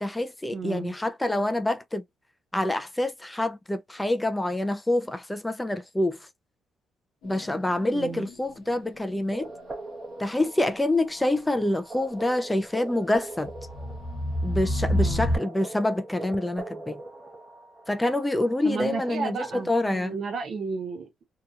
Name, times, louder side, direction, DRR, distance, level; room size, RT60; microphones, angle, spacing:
voice 1, 0.0-2.0 2.5-6.2 7.2-9.5 10.2-13.5 14.4-17.0 17.9-19.4 19.7-20.2, left 1 dB, 10° left, 0.3 m, -26 dB
voice 2, 0.5-0.9 7.9-8.3 15.0-15.4 18.6-21.2, right 5 dB, 55° right, 0.6 m, -33 dB
sound 1, 7.2-9.2 10.4-10.5 13.4-15.4, equal, 75° left, 0.8 m, -29 dB
sound 2, 9.3-19.6, right 2 dB, 30° right, 0.9 m, -42 dB
2.8 x 2.2 x 2.3 m
cardioid pair, 90°, 0 cm